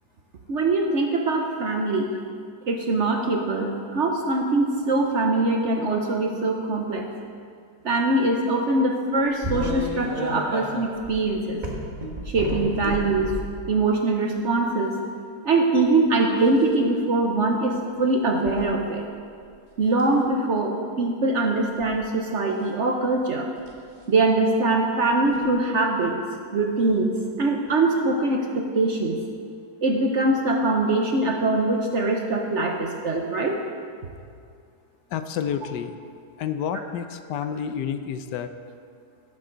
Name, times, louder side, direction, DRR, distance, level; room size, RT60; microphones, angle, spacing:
voice 1, 0.5-2.1 2.7-7.0 7.8-11.6 12.3-13.3 13.7-15.0 15.4-19.0 19.8-23.5 24.1-26.2 26.5-27.1 27.4-29.2 29.8-33.6, right 2 dB, 50° right, 2 dB, 0.9 m, -23 dB
sound 1, 9.4-13.6 14.3-14.5 16.3-16.7 18.4-18.6 19.1-19.5 19.9-20.2 21.6-21.9 23.6-23.8 25.3-25.4 26.9-27.0 27.7-27.8, equal, 30° right, 1.4 m, -32 dB
voice 2, 35.1-35.9 36.4-38.5, left 8 dB, 75° left, 9 dB, 1.2 m, -29 dB
17.5 x 7.5 x 3.9 m, 2.3 s
omnidirectional pair, 1.9 m